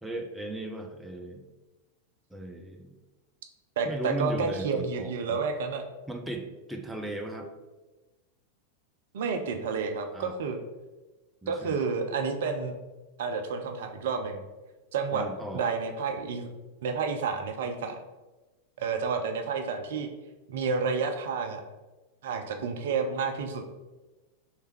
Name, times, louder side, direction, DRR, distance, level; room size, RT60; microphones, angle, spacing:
voice 1, 0.0-1.4 2.3-3.0 3.8-5.4 6.1-7.5 10.1-10.4 11.4-11.8 15.1-15.6, right 1 dB, 5° right, 2 dB, 0.5 m, -36 dB
voice 2, 3.8-5.8 9.1-10.6 11.5-12.7 13.2-14.4 14.9-15.3 15.5-16.5 16.8-18.0 18.8-20.1 20.5-21.6 22.2-23.6, right 5 dB, 55° right, 5 dB, 0.4 m, -30 dB
3.3 x 3.2 x 4.5 m, 1.2 s
figure-of-eight pair, 90°, 0 cm